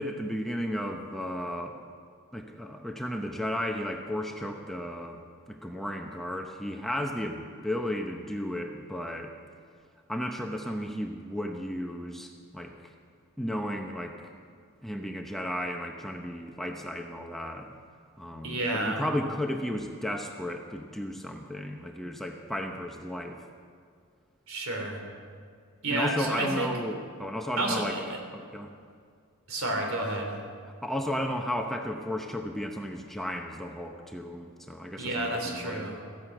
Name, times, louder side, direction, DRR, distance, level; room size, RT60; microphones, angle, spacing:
voice 1, 0.0-1.8 2.3-5.2 5.5-9.3 10.1-12.9 13.4-14.2 14.8-17.7 18.2-23.4 25.9-28.0 28.3-28.7 30.8-36.0, equal, ahead, 2 dB, 0.7 m, -34 dB
voice 2, 18.4-19.0 24.5-25.0 25.8-26.7 27.6-28.2 29.5-30.4 35.0-36.0, right 1 dB, 70° right, 2 dB, 3.0 m, -30 dB
14.5 x 11.0 x 7.8 m, 2.1 s
head